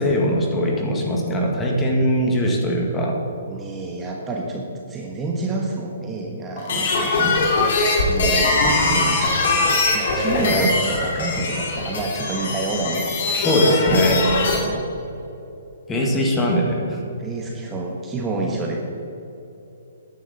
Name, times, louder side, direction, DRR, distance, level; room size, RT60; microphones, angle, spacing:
voice 1, 0.0-3.2 7.0-7.4 10.4-10.7 13.4-14.2 15.9-17.0, equal, 15° left, 0 dB, 1.8 m, -21 dB
voice 2, 3.5-7.2 8.1-13.1 13.7-14.9 17.2-18.8, right 2 dB, 15° right, 0 dB, 1.3 m, -29 dB
sound 1, 6.6-14.6, left 3 dB, 60° left, 3.0 m, -21 dB
13.5 x 9.8 x 4.2 m, 3.0 s
hypercardioid pair, 140°, 0 cm